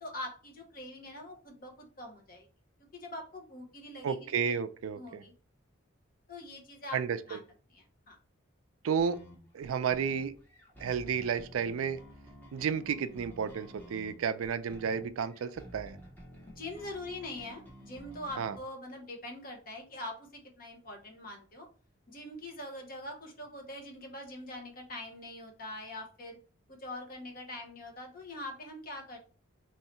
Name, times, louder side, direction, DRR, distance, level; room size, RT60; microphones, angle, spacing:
voice 1, 0.0-2.5 2.9-4.3 5.0-5.3 6.3-7.0 7.3-7.4 7.7-8.2 16.4-21.7 22.1-26.4 26.7-29.2, left 1 dB, 45° left, 0.9 m, -43 dB
voice 2, 4.0-5.2 6.9-7.4 8.8-9.2 9.5-10.3 10.8-12.0 12.5-16.0 18.4-18.5, right 7 dB, 80° right, 0.4 m, -32 dB
sound 1, 9.0-18.6, equal, 10° left, 0.8 m, -52 dB
3.0 x 2.8 x 4.4 m
head